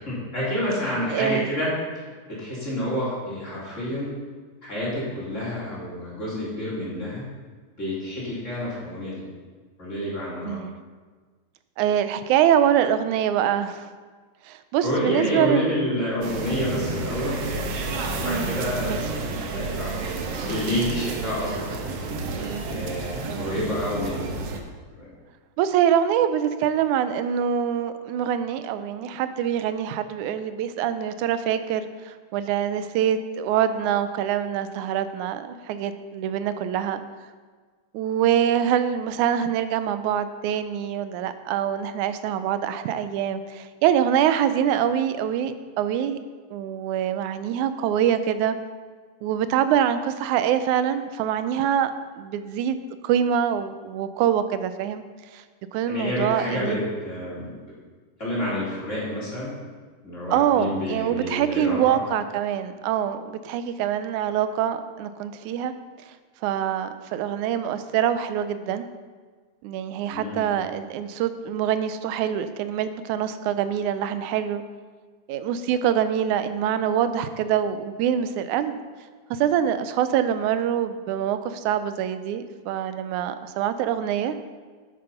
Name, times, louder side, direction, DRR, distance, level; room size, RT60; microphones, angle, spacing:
voice 1, 0.0-1.7 2.3-4.1 4.6-7.2 7.8-9.2 9.8-10.6 14.8-17.6 18.1-19.1 19.5-21.8 22.7-24.3 24.9-25.1 55.9-57.5 58.2-59.5 60.0-62.0 70.1-70.5, equal, 25° left, -7 dB, 3.5 m, -29 dB
voice 2, 1.1-1.5 10.4-10.8 11.8-13.9 14.5-15.7 18.2-19.0 23.3-23.5 25.6-37.0 37.9-46.2 46.5-48.6 49.2-51.9 52.2-52.8 53.0-55.0 55.3-55.4 55.7-56.8 60.3-65.7 66.4-68.9 69.6-74.6 75.3-78.8 79.3-84.4, right 9 dB, 90° right, 11 dB, 2.1 m, -24 dB
sound 1, 16.2-24.6, right 3 dB, 65° right, 1.8 m, -31 dB
9.3 x 8.9 x 5.6 m, 1.5 s
omnidirectional pair, 3.4 m